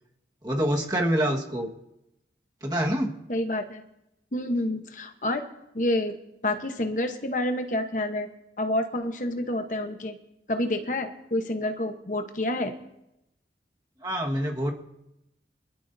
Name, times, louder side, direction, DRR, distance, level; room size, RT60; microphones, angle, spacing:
voice 1, 0.4-1.7 2.6-3.1 14.0-14.7, equal, 20° right, 0 dB, 1.5 m, -26 dB
voice 2, 3.3-3.8 4.3-5.4 5.7-6.2 6.4-8.3 8.6-10.1 10.5-12.7, left 1 dB, 45° left, 6 dB, 1.0 m, -28 dB
24.5 x 13.0 x 2.7 m, 0.87 s
head